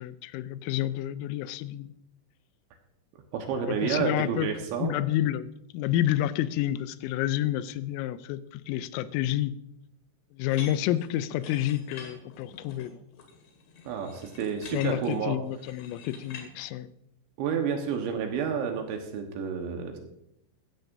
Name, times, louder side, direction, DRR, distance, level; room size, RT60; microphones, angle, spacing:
voice 1, 0.0-1.9 3.7-4.5 4.8-9.5 10.3-12.9 14.7-16.9, left 13 dB, 85° left, 14 dB, 3.2 m, -29 dB
voice 2, 3.3-4.9 13.9-15.4 17.4-20.0, right 7 dB, 70° right, 4 dB, 3.3 m, -30 dB
sound 1, 10.5-16.5, left 6 dB, 70° left, 4.1 m, -46 dB
15.5 x 12.5 x 2.7 m, 0.78 s
omnidirectional pair, 5.9 m